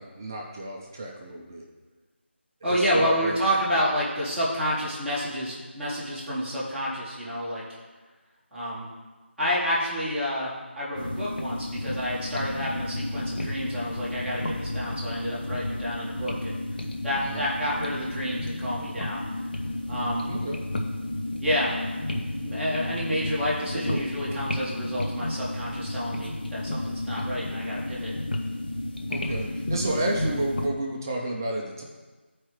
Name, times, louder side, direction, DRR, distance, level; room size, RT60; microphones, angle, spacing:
voice 1, 0.0-1.7 2.6-3.4 17.2-17.5 20.2-20.6 23.7-24.4 29.1-31.8, right 1 dB, 15° right, -1 dB, 0.5 m, -31 dB
voice 2, 2.6-7.6 8.5-8.9 9.4-16.6 17.0-19.2 19.9-20.3 21.4-21.7 22.4-28.1, equal, ahead, -16 dB, 1.3 m, -29 dB
sound 1, 10.9-30.7, left 1 dB, 50° left, 0.9 m, -32 dB
11.5 x 4.7 x 3.2 m, 1.3 s
figure-of-eight pair, 170°, 7 cm